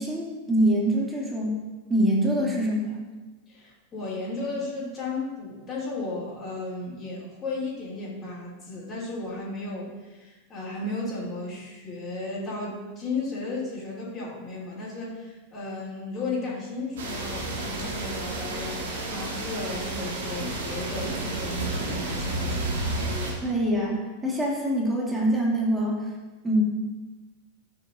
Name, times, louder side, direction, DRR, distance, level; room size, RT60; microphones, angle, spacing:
voice 1, 0.0-1.6 1.9-3.0 23.4-26.1 26.4-26.6, right 1 dB, 10° right, -3 dB, 2.6 m, -24 dB
voice 2, 3.5-18.8 19.1-23.0, left 3 dB, 25° left, -6 dB, 3.1 m, -34 dB
sound 1, 17.0-23.3, right 2 dB, 60° right, 2.2 m, -31 dB
13.5 x 8.8 x 2.7 m, 1.2 s
figure-of-eight pair, 90°, 0 cm